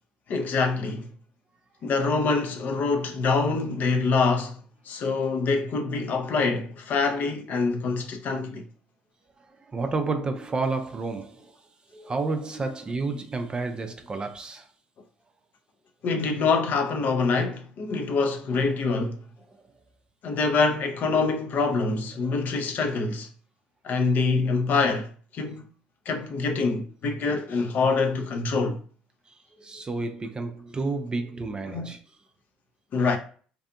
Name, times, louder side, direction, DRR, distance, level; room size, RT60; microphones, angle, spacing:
voice 1, 0.3-1.1 1.8-4.6 4.9-8.6 16.0-19.2 20.2-23.3 23.8-25.6 26.1-28.8 31.7-31.9 32.9-33.2, left 4 dB, 50° left, 0.5 m, -25 dB
voice 2, 9.5-11.6 11.9-14.7 19.5-19.6 29.3-32.0, right 3 dB, 25° right, 0.4 m, -31 dB
2.6 x 2.5 x 2.2 m
hypercardioid pair, 65°, 4 cm